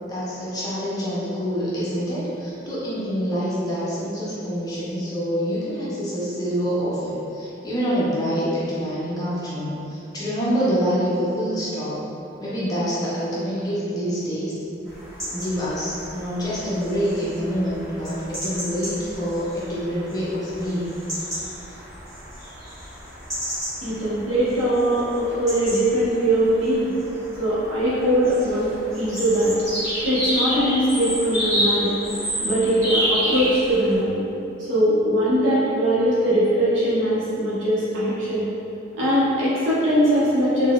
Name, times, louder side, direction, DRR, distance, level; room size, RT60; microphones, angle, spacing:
voice 1, 0.1-12.0 12.4-14.5 15.3-20.9, equal, 20° left, -9 dB, 0.6 m, -26 dB
sound 1, 14.9-34.0, equal, 15° right, 1.3 m, -30 dB
voice 2, 23.8-26.9 27.4-29.5 30.0-31.9 32.4-34.2 34.6-38.5 39.0-40.7, equal, 80° right, -10 dB, 1.1 m, -21 dB
3.9 x 2.6 x 2.3 m, 2.9 s
head